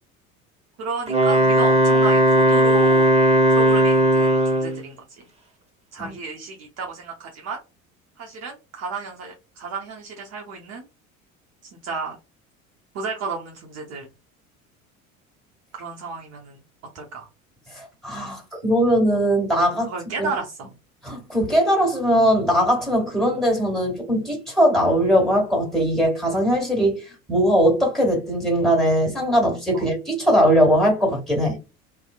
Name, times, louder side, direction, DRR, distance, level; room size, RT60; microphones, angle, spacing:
voice 1, 0.8-3.1 3.5-5.2 5.9-7.6 8.2-10.9 11.6-12.2 12.9-14.1 15.7-16.6 16.9-17.3 19.8-20.7 29.7-29.9, right 4 dB, 40° right, 0.6 m, -32 dB
Wind instrument woodwind instrument, 1.1-4.8, right 1 dB, 15° right, 1.0 m, -17 dB
voice 2, 17.7-19.9 20.2-20.3 21.0-27.0 27.3-31.6, equal, ahead, 1.5 m, -20 dB
2.7 x 2.0 x 2.4 m
figure-of-eight pair, 70°, 41 cm